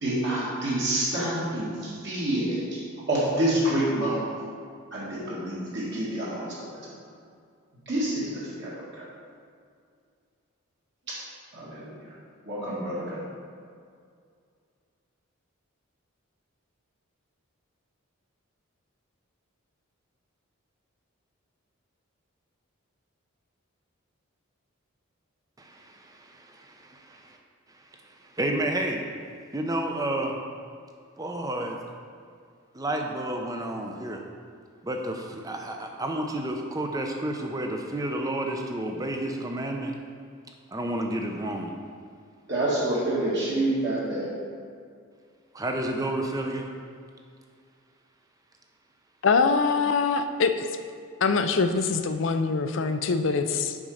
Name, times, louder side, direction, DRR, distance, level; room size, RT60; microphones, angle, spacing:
voice 1, 0.0-2.8 3.1-4.3 4.9-6.7 7.9-9.0 11.1-11.2 11.5-12.1 12.5-13.3 42.5-44.3, right 1 dB, 55° right, -8 dB, 2.1 m, -28 dB
voice 2, 25.6-27.4 28.2-29.0 29.5-30.4 31.2-31.8 32.7-34.2 34.8-39.9 40.7-41.7 45.5-46.7, right 1 dB, 15° right, 2 dB, 0.6 m, -30 dB
voice 3, 49.2-50.7 51.2-53.8, left 4 dB, 60° left, 8 dB, 0.5 m, -24 dB
7.1 x 5.3 x 5.0 m, 2.2 s
head